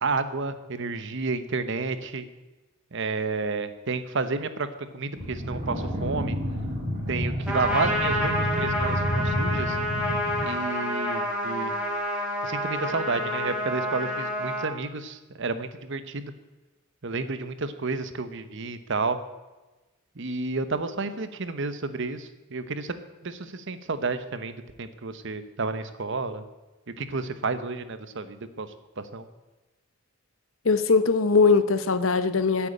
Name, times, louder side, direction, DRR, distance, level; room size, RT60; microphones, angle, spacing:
voice 1, 0.0-2.3 2.9-4.7 4.9-6.4 7.1-9.8 10.4-11.7 12.4-16.3 17.0-19.2 20.2-23.0 23.2-26.4 26.9-29.3, right 3 dB, 60° right, 11 dB, 0.9 m, -31 dB
sound 1, 5.2-10.5, equal, 25° right, 3.1 m, -29 dB
Trumpet, 7.5-14.7, equal, 5° right, 3.2 m, -28 dB
voice 2, 30.6-32.7, left 4 dB, 65° left, 12 dB, 0.8 m, -21 dB
10.5 x 8.3 x 8.6 m, 1.1 s
head